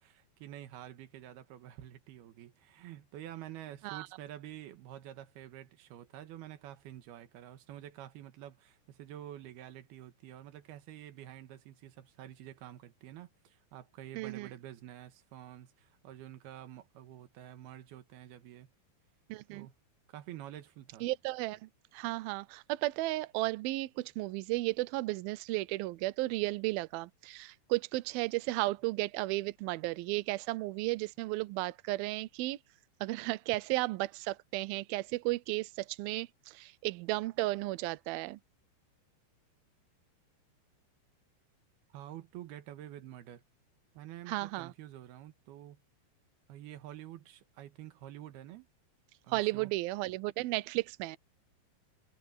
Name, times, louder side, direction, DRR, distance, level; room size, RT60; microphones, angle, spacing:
voice 1, 0.0-18.7 19.5-19.7 20.1-21.1 41.9-43.4 43.9-45.8 46.5-48.7 49.2-49.7, right 12 dB, 70° right, 3.1 m, -48 dB
voice 2, 14.2-14.5 19.3-19.7 21.0-32.6 33.0-38.4 44.3-44.7 49.3-51.2, right 20 dB, 90° right, 2.1 m, -34 dB
omnidirectional pair, 5.2 m